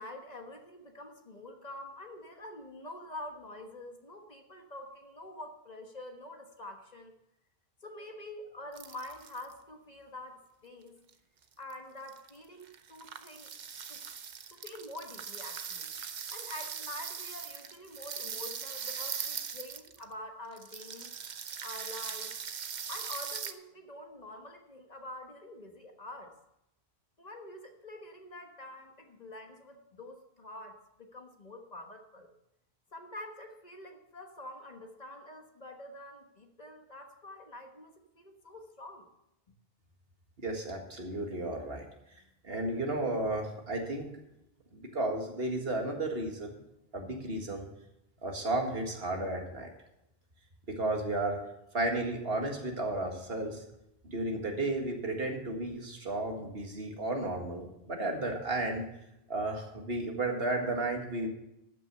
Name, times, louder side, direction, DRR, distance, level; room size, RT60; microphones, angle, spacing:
voice 1, 0.0-7.1 7.8-11.0 11.6-13.5 13.9-14.0 14.5-15.9 16.3-21.1 21.6-22.3 22.9-26.3 27.2-32.3 32.9-39.1, left 1 dB, 40° left, 4 dB, 1.4 m, -46 dB
sound 1, 8.7-9.5 11.1-11.2 11.7-11.8 12.1-12.4 12.6-20.1 20.5-23.5, right 7 dB, 50° right, 0.8 m, -40 dB
voice 2, 40.4-41.8 42.1-44.1 44.7-46.6 46.9-47.7 48.2-49.7 50.7-51.4 51.7-53.6 54.0-58.9 59.3-61.3, right 2 dB, 70° right, 2 dB, 2.1 m, -33 dB
13.0 x 6.2 x 6.6 m, 0.84 s
omnidirectional pair, 1.0 m